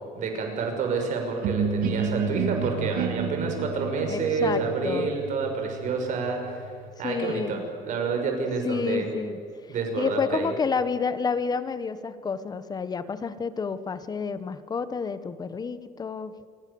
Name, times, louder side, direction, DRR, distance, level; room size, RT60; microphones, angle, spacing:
voice 1, 0.1-6.7 7.0-9.1 9.7-10.5, right 4 dB, 55° right, 3 dB, 6.1 m, -28 dB
sound 1, 1.4-7.1, right 5 dB, 75° right, 2.3 m, -30 dB
voice 2, 4.1-5.1 7.0-7.6 8.6-9.4 10.0-16.5, left 5 dB, 25° left, 13 dB, 1.1 m, -29 dB
28.0 x 22.0 x 7.0 m, 2.5 s
cardioid pair, 155°, 15 cm